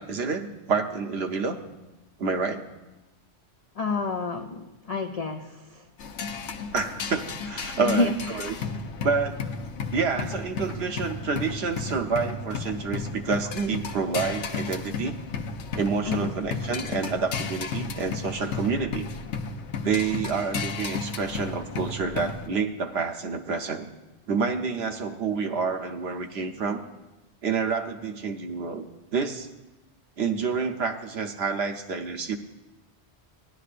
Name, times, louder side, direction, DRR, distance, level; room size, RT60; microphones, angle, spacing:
voice 1, 0.0-1.6 2.2-2.6 6.7-8.6 9.0-9.4 9.9-15.1 15.7-19.1 19.8-23.9 24.3-26.8 27.4-28.9 29.1-29.5 30.2-32.4, right 5 dB, 60° right, 6 dB, 0.9 m, -28 dB
voice 2, 3.8-5.9 7.8-8.1 8.5-8.6 16.0-16.3, left 3 dB, 55° left, 4 dB, 0.4 m, -28 dB
sound 1, 6.0-22.5, left 4 dB, 70° left, 1.0 m, -34 dB
17.0 x 11.0 x 2.5 m, 1.0 s
omnidirectional pair, 1.2 m